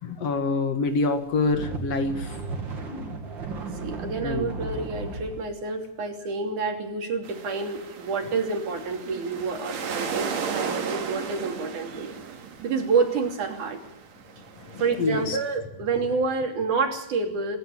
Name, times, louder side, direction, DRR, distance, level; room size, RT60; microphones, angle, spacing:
voice 1, 0.0-2.4 4.2-4.5 14.7-15.4, left 3 dB, 55° left, 8 dB, 2.8 m, -26 dB
sound 1, 1.2-5.4, right 3 dB, 40° right, 3.0 m, -34 dB
voice 2, 3.8-12.1 12.6-13.8 14.8-17.6, right 4 dB, 80° right, 4 dB, 4.5 m, -28 dB
sound 2, 7.2-15.5, right 6 dB, 65° right, 3.2 m, -35 dB
26.0 x 13.0 x 8.8 m, 0.83 s
omnidirectional pair, 3.5 m